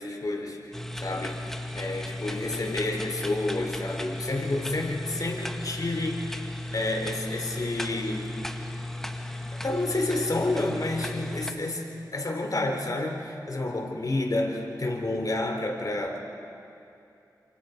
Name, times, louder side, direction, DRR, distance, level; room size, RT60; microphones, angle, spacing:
voice 1, 0.0-1.4 1.7-6.4 6.7-8.4 9.5-16.2, left 2 dB, 55° left, 1 dB, 4.1 m, -30 dB
sound 1, 0.7-11.5, left 1 dB, 5° left, 1.8 m, -35 dB
28.5 x 27.5 x 5.3 m, 2.7 s
cardioid pair, 50°, 7 cm